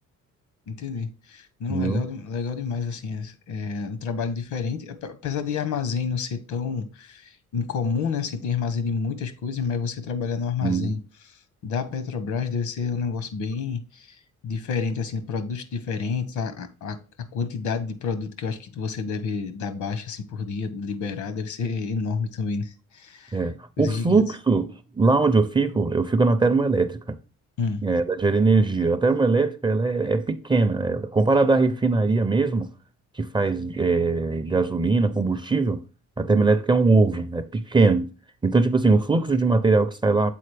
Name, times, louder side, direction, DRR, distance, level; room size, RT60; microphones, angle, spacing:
voice 1, 0.7-11.0 11.6-14.2 14.4-23.4 23.8-24.2 27.6-27.8, left 5 dB, 75° left, 1.0 m, -29 dB
voice 2, 1.7-2.0 10.6-11.0 23.3-27.2 27.8-32.7 33.2-35.8 36.2-38.1 38.4-40.3, right 3 dB, 15° right, 0.4 m, -21 dB
7.7 x 4.0 x 3.3 m
cardioid pair, 90°, 30 cm